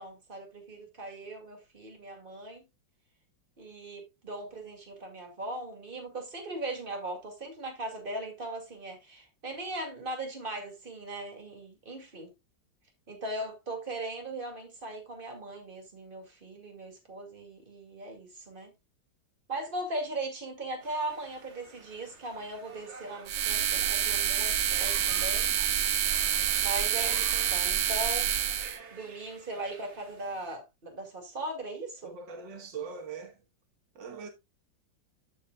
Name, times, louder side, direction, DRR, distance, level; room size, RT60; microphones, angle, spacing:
voice 1, 0.0-2.6 3.6-12.3 13.1-18.7 19.5-25.5 26.6-28.3 28.9-32.1, right 2 dB, 30° right, 2.4 m, -39 dB
sound 1, 20.8-30.6, right 5 dB, 45° right, 1.1 m, -48 dB
sound 2, 23.3-28.8, right 9 dB, 65° right, 1.1 m, -27 dB
voice 2, 32.0-33.4 34.0-34.3, right 5 dB, 80° right, 2.0 m, -41 dB
14.0 x 5.0 x 2.3 m
omnidirectional pair, 2.0 m